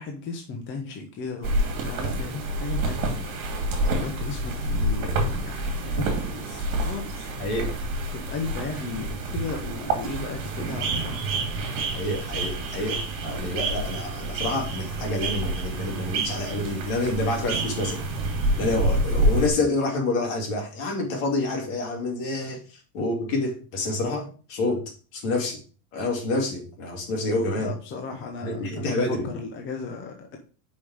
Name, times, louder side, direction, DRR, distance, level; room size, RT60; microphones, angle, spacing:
voice 1, 0.0-1.5 1.8-7.3 8.1-11.3 27.6-30.4, left 4 dB, 25° left, 0.8 m, -36 dB
sound 1, 1.4-19.5, right 2 dB, 40° right, 2.6 m, -28 dB
voice 2, 11.9-18.1 18.6-25.6 25.9-27.7 28.4-29.3, left 2 dB, 55° left, 2.5 m, -28 dB
5.4 x 5.3 x 4.8 m
supercardioid pair, 150°, 50 cm